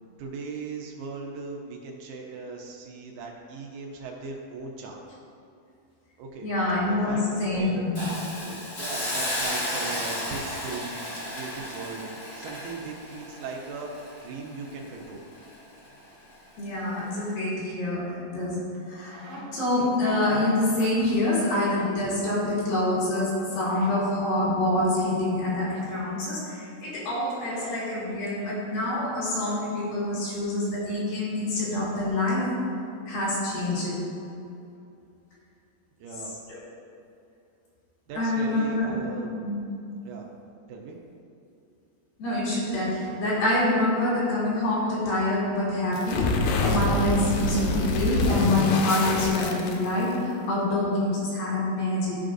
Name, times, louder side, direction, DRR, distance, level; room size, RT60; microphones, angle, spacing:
voice 1, 0.2-5.0 6.2-6.5 6.9-15.2 36.0-36.4 38.1-39.5 40.0-40.3 40.7-41.0, right 4 dB, 75° right, 0 dB, 2.3 m, -38 dB
voice 2, 6.4-8.1 16.6-19.2 19.5-32.5 33.1-34.0 36.5-36.6 38.2-39.0 39.4-39.6 42.2-52.2, left 1 dB, 65° left, -7 dB, 3.6 m, -26 dB
Hiss, 7.9-15.0 15.4-15.5, left 1 dB, 40° left, 1.4 m, -33 dB
sound 1, 18.7-19.8 21.4-22.0 23.5-24.0 25.5-25.9 27.2-27.8, equal, 55° right, 1.3 m, -46 dB
sound 2, 45.9-50.2, left 2 dB, 85° left, 2.4 m, -26 dB
13.5 x 5.0 x 2.6 m, 2.6 s
omnidirectional pair, 4.6 m